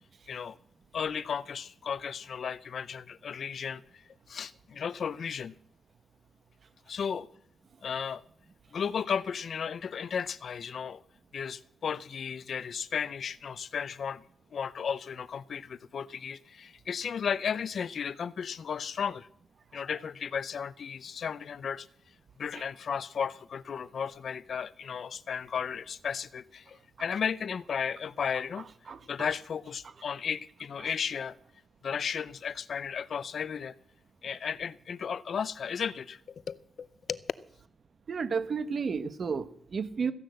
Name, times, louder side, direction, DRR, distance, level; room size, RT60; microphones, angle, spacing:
voice 1, 0.9-3.8 4.3-5.5 6.9-7.3 7.8-8.2 8.7-11.0 11.3-14.2 14.5-19.3 19.7-21.9 22.4-28.7 29.1-31.4 31.8-33.7 34.2-37.2, left 7 dB, 60° left, 0.6 m, -34 dB
voice 2, 28.9-29.3 38.1-40.1, right 5 dB, 50° right, 1.0 m, -32 dB
14.5 x 10.5 x 7.8 m
wide cardioid pair, 135°, 0 cm